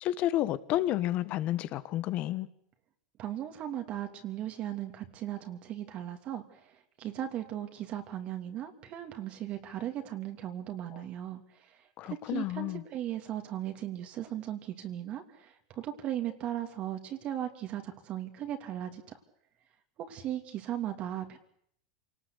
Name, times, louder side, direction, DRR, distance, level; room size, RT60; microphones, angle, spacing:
voice 1, 0.0-2.5 10.9-11.0 12.0-12.8, left 14 dB, 45° left, 15 dB, 1.5 m, -31 dB
voice 2, 3.2-6.4 7.0-11.4 12.0-19.2 20.1-21.4, right 11 dB, 40° right, 5 dB, 2.8 m, -37 dB
27.0 x 19.0 x 8.2 m, 0.68 s
supercardioid pair, 120°, 3 cm